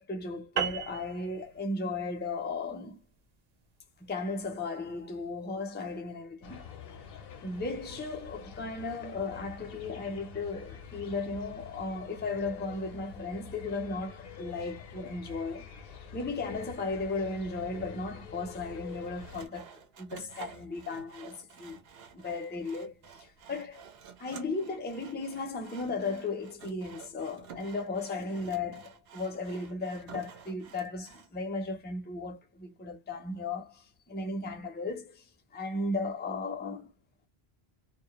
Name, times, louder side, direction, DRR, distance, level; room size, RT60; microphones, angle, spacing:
voice 1, 0.0-3.0 4.0-6.6 7.4-15.7 16.1-21.8 22.1-23.8 24.2-35.2 35.5-36.9, left 3 dB, 15° left, 0.4 m, -36 dB
sound 1, 0.6-5.3, right 7 dB, 55° right, 0.5 m, -38 dB
sound 2, 6.4-19.5, left 7 dB, 70° left, 0.8 m, -47 dB
Sawing, 18.8-31.3, right 7 dB, 75° right, 0.9 m, -51 dB
2.2 x 2.1 x 2.8 m
omnidirectional pair, 1.0 m